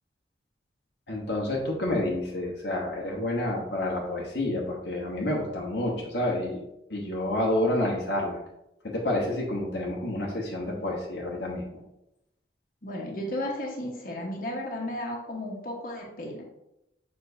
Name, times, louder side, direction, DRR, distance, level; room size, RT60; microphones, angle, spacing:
voice 1, 1.1-6.6 6.9-8.4 8.8-11.8, left 1 dB, 70° left, -2 dB, 1.1 m, -29 dB
voice 2, 12.8-16.4, left 1 dB, 50° left, -1 dB, 1.2 m, -34 dB
6.8 x 5.3 x 2.7 m, 0.86 s
head